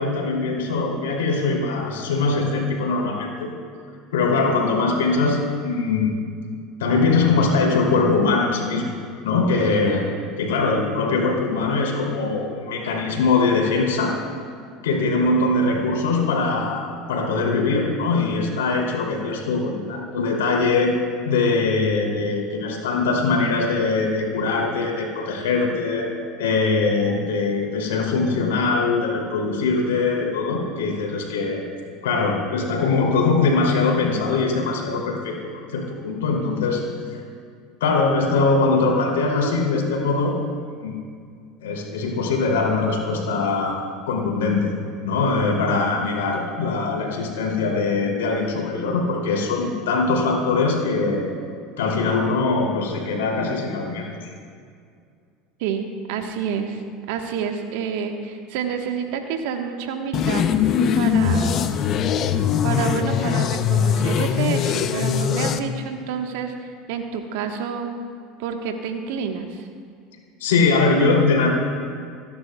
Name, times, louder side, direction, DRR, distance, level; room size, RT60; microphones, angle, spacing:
voice 1, 0.0-3.5 4.1-6.2 6.8-8.9 9.2-10.0 10.4-14.2 14.8-20.9 21.2-26.1 26.4-31.6 32.0-36.9 37.8-40.4 40.8-41.0 41.6-44.7 45.0-51.3 51.8-54.3 70.4-71.5, left 3 dB, 80° left, -1 dB, 2.9 m, -22 dB
voice 2, 55.6-56.8 57.1-60.5 60.9-61.6 62.6-67.9 68.4-69.7, right 7 dB, 70° right, 4 dB, 1.3 m, -28 dB
sound 1, 60.1-65.6, left 7 dB, 45° left, 0.7 m, -21 dB
26.5 x 10.5 x 2.3 m, 2.2 s
hypercardioid pair, 80°, 0 cm